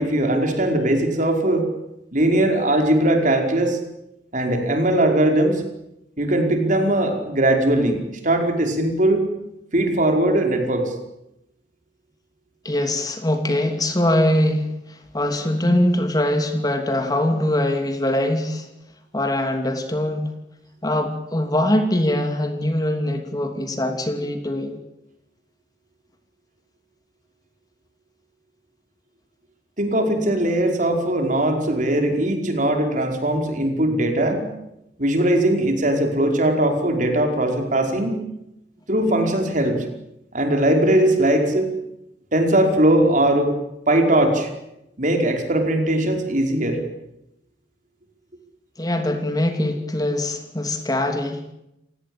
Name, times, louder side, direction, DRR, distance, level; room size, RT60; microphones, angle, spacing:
voice 1, 0.0-1.7 2.1-3.8 4.3-5.6 6.2-9.3 9.7-10.9 29.8-34.5 35.0-38.2 38.9-39.9 40.3-41.7 42.3-43.5 43.9-44.5 45.0-46.8, right 1 dB, 45° right, 4 dB, 5.1 m, -20 dB
voice 2, 12.6-18.7 19.1-20.3 20.8-24.8 48.8-51.4, left 1 dB, 20° left, 6 dB, 2.8 m, -22 dB
29.5 x 17.5 x 8.9 m, 0.86 s
head